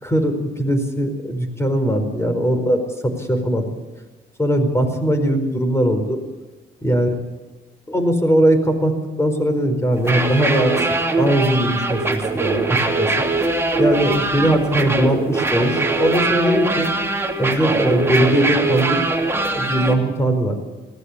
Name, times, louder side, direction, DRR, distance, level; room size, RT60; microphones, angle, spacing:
voice 1, 0.0-3.6 4.4-6.2 6.8-7.1 7.9-8.9 9.2-10.8 11.2-13.1 13.8-16.9 17.4-19.0 19.3-20.6, right 1 dB, 15° left, 7 dB, 4.5 m, -20 dB
sound 1, 10.0-19.9, right 3 dB, 10° right, 2.8 m, -21 dB
19.5 x 16.5 x 8.4 m, 1.2 s
cardioid pair, 90°, 20 cm